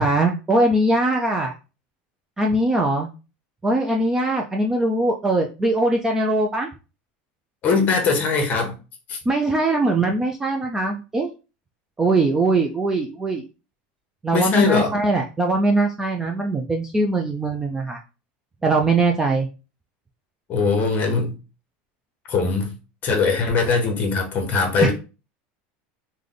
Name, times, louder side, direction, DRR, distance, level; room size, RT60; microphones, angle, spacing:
voice 1, 0.0-1.5 2.4-3.1 3.6-6.7 9.3-11.3 12.0-13.4 14.2-18.0 18.6-19.5 24.8-24.9, right 2 dB, 10° right, 1 dB, 0.3 m, -21 dB
voice 2, 7.6-8.8 9.1-9.2 14.3-14.9 20.5-21.3 22.3-22.7 23.0-24.9, left 4 dB, 30° left, 4 dB, 1.0 m, -21 dB
3.2 x 2.2 x 3.8 m, 0.31 s
supercardioid pair, 155°, 5 cm